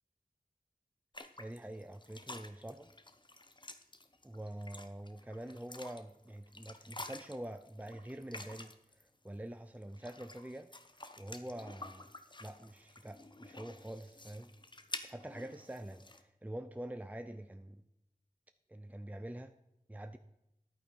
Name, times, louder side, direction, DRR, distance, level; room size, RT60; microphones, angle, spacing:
sound 1, 1.1-9.0 9.7-16.2, left 2 dB, 30° left, 0.9 m, -50 dB
voice 1, 1.4-2.9 4.2-10.7 11.2-12.1 12.4-14.5 15.0-17.8 18.7-19.5 19.9-20.2, right 1 dB, 10° right, 9 dB, 0.5 m, -46 dB
11.0 x 8.8 x 4.7 m, 0.85 s
wide cardioid pair, 60°, 15 cm